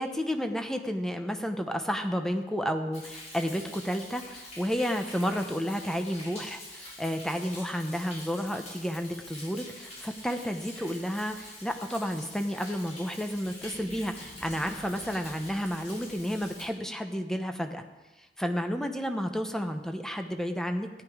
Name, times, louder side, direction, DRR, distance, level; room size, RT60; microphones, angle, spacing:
voice 1, 0.0-17.8 18.4-20.9, equal, 5° left, 5 dB, 0.8 m, -31 dB
Thunder, 2.9-16.6, left 1 dB, 40° left, 4.5 m, -46 dB
14.0 x 9.9 x 4.9 m, 1.1 s
head